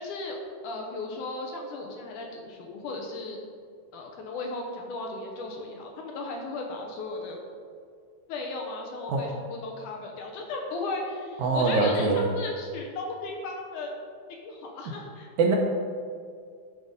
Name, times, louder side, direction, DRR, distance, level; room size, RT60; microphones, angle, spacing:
voice 1, 0.0-3.4 3.9-7.4 8.3-13.9 14.3-15.3, left 2 dB, 75° left, 1 dB, 2.2 m, -35 dB
voice 2, 11.4-12.3 15.4-15.6, right 4 dB, 75° right, 0 dB, 1.9 m, -23 dB
11.5 x 3.8 x 5.2 m, 2.1 s
omnidirectional pair, 3.9 m